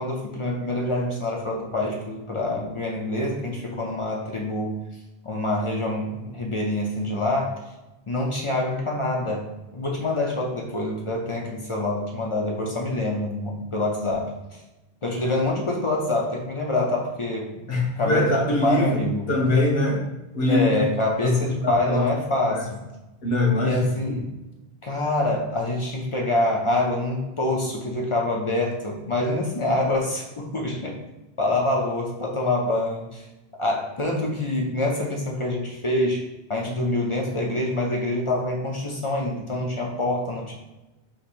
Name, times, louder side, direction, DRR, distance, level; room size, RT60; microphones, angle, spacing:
voice 1, 0.0-4.7 5.2-7.5 8.1-9.5 9.7-14.3 15.0-17.7 18.0-19.3 20.5-22.8 23.6-24.3 24.8-31.0 31.4-33.2 33.6-36.2 36.5-40.5, left 2 dB, 40° left, -1 dB, 0.5 m, -26 dB
voice 2, 17.7-19.0 19.3-20.0 20.3-20.8 21.2-21.5 21.9-22.1 22.5-22.6 23.2-23.9, left 2 dB, 60° left, 0 dB, 1.0 m, -22 dB
2.9 x 2.9 x 4.4 m, 1.0 s
omnidirectional pair, 1.1 m